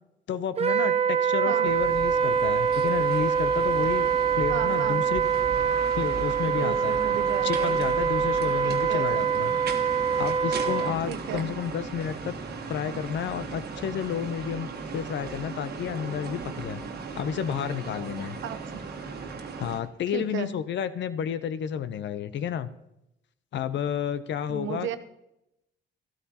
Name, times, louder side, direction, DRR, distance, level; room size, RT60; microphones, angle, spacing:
voice 1, 0.3-4.1 4.4-5.2 5.9-7.0 7.4-9.5 10.2-12.4 12.7-14.7 14.9-16.8 17.1-18.4 19.6-22.7 23.5-25.0, left 8 dB, 65° left, 14 dB, 0.7 m, -31 dB
Wind instrument woodwind instrument, 0.6-11.0, right 7 dB, 30° right, 0.5 m, -24 dB
sound 1, 1.6-19.8, right 4 dB, 50° right, 1.4 m, -38 dB
voice 2, 4.5-5.0 6.5-7.8 8.6-9.1 11.1-11.5 18.4-18.8 20.1-20.5 24.5-25.0, right 9 dB, 80° right, 10 dB, 0.8 m, -34 dB
13.0 x 13.0 x 2.9 m, 0.85 s
cardioid pair, 90°, 20 cm